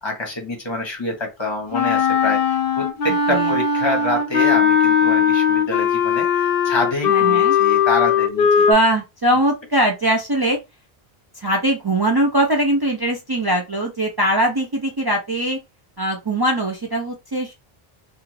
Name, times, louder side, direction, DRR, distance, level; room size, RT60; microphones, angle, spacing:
voice 1, 0.0-8.7, left 2 dB, 30° left, 1.0 m, -26 dB
Wind instrument woodwind instrument, 1.7-8.7, left 7 dB, 70° left, 0.7 m, -18 dB
voice 2, 7.1-7.6 8.7-10.6 11.4-15.6 16.0-17.5, right 1 dB, 35° right, 0.3 m, -21 dB
2.5 x 2.3 x 3.0 m
omnidirectional pair, 1.0 m